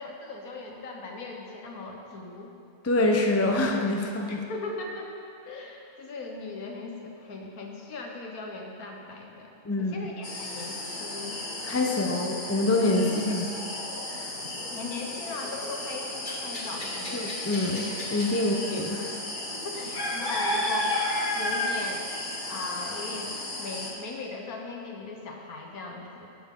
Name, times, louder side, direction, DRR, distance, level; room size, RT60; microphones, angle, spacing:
voice 1, 0.0-2.5 4.3-5.1 5.4-11.4 11.9-12.2 13.0-13.4 14.7-17.3 18.4-18.8 19.5-21.0 21.3-22.0 22.5-26.3, left 3 dB, 70° left, 1 dB, 1.6 m, -39 dB
voice 2, 2.8-4.4 9.6-9.9 11.6-13.5 14.1-14.3 17.1-17.9 18.1-19.1, left 2 dB, 20° left, 1 dB, 0.4 m, -26 dB
sound 1, 10.2-23.9, left 1 dB, 35° left, 1.4 m, -33 dB
12.5 x 9.5 x 3.8 m, 2.6 s
omnidirectional pair, 1.6 m